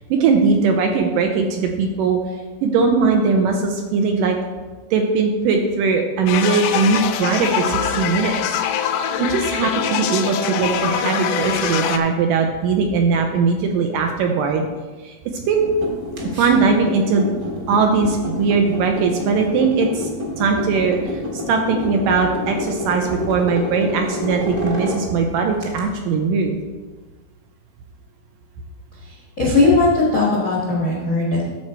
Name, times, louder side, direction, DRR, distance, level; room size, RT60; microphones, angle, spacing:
voice 1, 0.1-2.2 2.6-4.4 4.9-8.6 9.2-14.6 15.0-15.2 15.5-15.7 16.4-17.3 17.7-20.1 20.4-21.0 21.3-26.6, right 4 dB, 80° right, 3 dB, 2.0 m, -19 dB
sound 1, 6.3-12.0, left 9 dB, 85° left, 2.5 m, -23 dB
sound 2, 15.5-25.8, left 1 dB, 55° right, 1.0 m, -29 dB
voice 2, 29.0-31.5, left 3 dB, 70° left, -5 dB, 0.7 m, -18 dB
13.0 x 4.4 x 4.4 m, 1.3 s
omnidirectional pair, 4.4 m